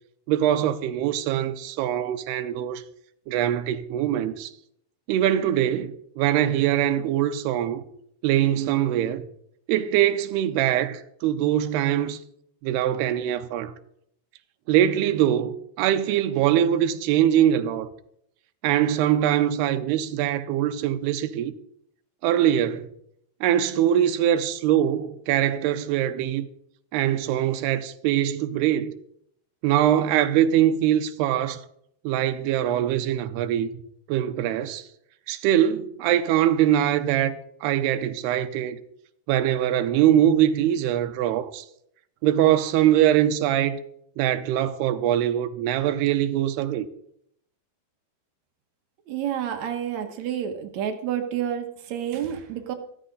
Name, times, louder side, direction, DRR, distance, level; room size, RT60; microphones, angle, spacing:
voice 1, 0.3-2.8 3.3-4.5 5.1-7.8 8.2-9.2 9.7-12.2 12.6-13.7 14.7-17.9 18.6-21.5 22.2-22.9 23.4-26.5 26.9-28.9 29.6-31.6 32.0-33.7 34.1-34.8 35.3-37.4 37.6-38.8 39.3-41.6 42.2-43.8 44.2-46.9, right 11 dB, 90° right, 2.8 m, -22 dB
voice 2, 49.1-52.7, right 9 dB, 65° right, 1.9 m, -29 dB
14.0 x 14.0 x 3.9 m
omnidirectional pair, 4.6 m